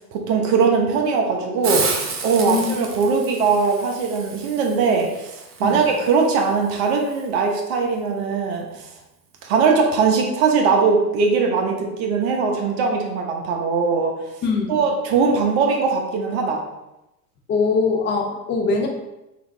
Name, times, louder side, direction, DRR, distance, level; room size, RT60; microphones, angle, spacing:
voice 1, 0.1-8.7 9.4-14.1 14.7-16.6, right 5 dB, 60° right, 2 dB, 1.1 m, -20 dB
Hiss, 1.6-7.3, right 4 dB, 25° right, 0.7 m, -31 dB
voice 2, 2.4-2.8 5.6-5.9 14.4-14.8 17.5-18.9, left 4 dB, 25° left, 2 dB, 0.6 m, -22 dB
3.9 x 3.5 x 3.3 m, 0.93 s
hypercardioid pair, 100°, 47 cm